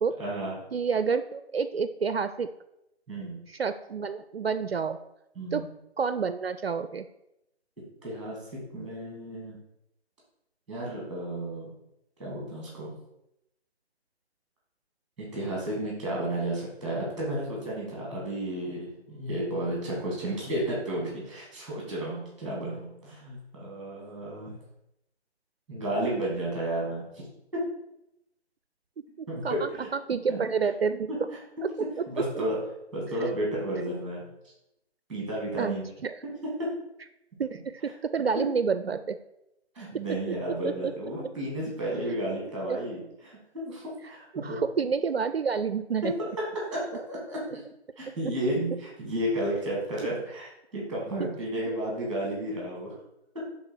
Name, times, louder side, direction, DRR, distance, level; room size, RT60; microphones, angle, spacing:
voice 1, 0.2-0.6 3.1-3.4 5.4-5.7 8.0-9.6 10.7-11.7 12.2-12.9 15.2-24.5 25.7-27.3 27.5-27.6 29.3-29.9 30.3-30.4 31.1-31.2 32.1-32.6 32.9-34.3 35.1-35.9 36.2-36.3 36.6-36.7 38.4-38.5 39.7-44.6 46.0-46.1 46.7-46.8 47.1-47.6 48.0-53.0, right 1 dB, ahead, -4 dB, 1.8 m, -32 dB
voice 2, 0.7-2.5 3.5-5.0 5.5-5.6 6.0-7.1 29.2-31.1 35.6-36.2 37.4-39.2 40.6-40.9 42.7-42.8 44.3-46.1, right 5 dB, 65° right, 11 dB, 0.5 m, -29 dB
10.0 x 3.7 x 4.5 m, 0.85 s
figure-of-eight pair, 145°, 33 cm